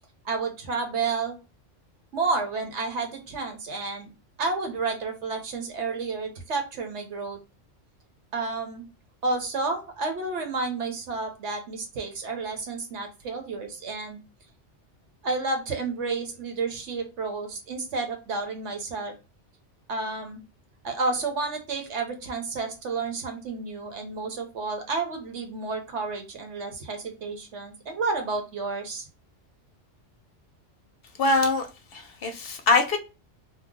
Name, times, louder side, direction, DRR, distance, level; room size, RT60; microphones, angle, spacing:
voice 1, 0.2-1.4 2.1-4.1 4.4-7.4 8.3-8.8 9.2-14.2 15.2-19.1 19.9-20.4 20.8-29.1, right 3 dB, 75° right, 4 dB, 1.1 m, -31 dB
voice 2, 31.2-33.0, left 3 dB, 60° left, 5 dB, 0.7 m, -23 dB
2.8 x 2.1 x 3.7 m, 0.29 s
omnidirectional pair, 1.2 m